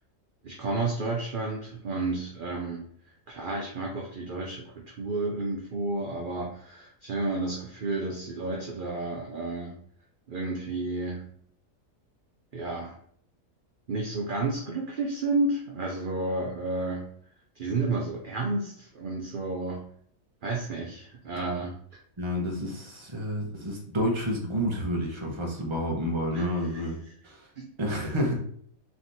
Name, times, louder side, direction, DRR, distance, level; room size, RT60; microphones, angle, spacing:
voice 1, 0.4-2.9 3.3-9.8 10.3-11.3 12.5-12.9 13.9-17.1 17.6-19.8 20.4-21.7 26.3-26.5 26.7-26.9 27.6-27.7, right 2 dB, 50° right, -1 dB, 0.7 m, -31 dB
voice 2, 22.2-27.5 27.8-28.4, equal, 25° right, -1 dB, 0.9 m, -30 dB
3.4 x 3.0 x 4.0 m, 0.62 s
omnidirectional pair, 1.4 m